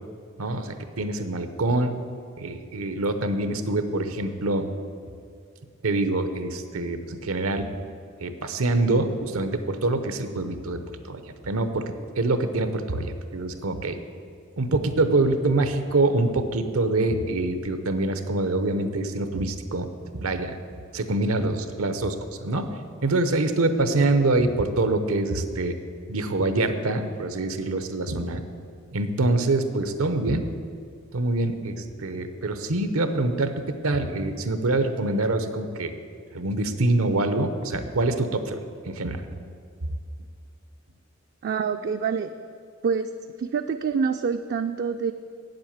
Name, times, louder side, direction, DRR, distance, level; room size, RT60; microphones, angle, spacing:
voice 1, 0.4-1.9 2.4-4.7 5.8-7.7 8.2-14.0 14.6-19.9 20.1-20.6 20.9-22.7 23.0-25.8 26.1-28.4 28.9-30.5 31.1-33.5 33.8-35.9 36.3-38.6 38.9-39.3, right 2 dB, 90° right, 9 dB, 0.9 m, -25 dB
voice 2, 41.4-42.3 42.8-43.1 43.4-45.1, right 6 dB, 50° right, 7 dB, 0.3 m, -26 dB
8.5 x 7.8 x 7.3 m, 2.3 s
head